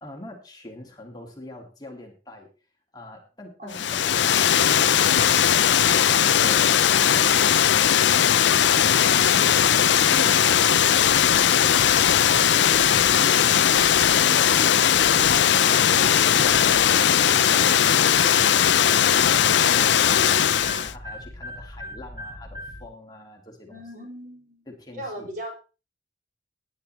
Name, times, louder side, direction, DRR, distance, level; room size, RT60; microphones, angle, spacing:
voice 1, 0.0-2.5 19.8-23.8 24.7-25.3, left 1 dB, 20° left, 1 dB, 2.0 m, -43 dB
voice 2, 3.6-4.7 23.7-24.6 24.9-25.6, equal, 45° right, 0 dB, 5.2 m, -39 dB
Water, 3.7-20.9, left 9 dB, 75° left, 0.5 m, -19 dB
sound 1, 11.0-11.4 11.8-12.2 12.7-13.1 13.7-14.1 15.0-15.3 16.5-16.8 18.0-22.8, left 2 dB, 20° right, 5.1 m, -38 dB
17.5 x 9.8 x 3.1 m, 0.32 s
head